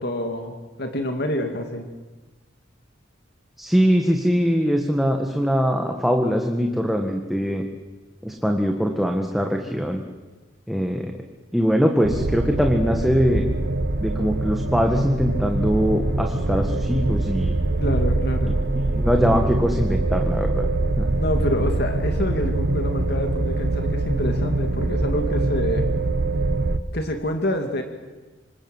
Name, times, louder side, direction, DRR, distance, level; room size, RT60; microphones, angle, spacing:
voice 1, 0.0-1.9 17.8-18.6 21.2-25.9 26.9-27.8, left 1 dB, 55° left, 4 dB, 2.5 m, -27 dB
voice 2, 3.6-7.6 8.2-10.0 10.7-11.1 11.5-13.5 14.0-17.6 18.5-18.6 18.9-20.7 21.0-21.1, equal, ahead, 2 dB, 1.8 m, -22 dB
sound 1, 12.0-26.8, right 2 dB, 55° right, 1.3 m, -23 dB
27.5 x 26.0 x 8.1 m, 1.2 s
head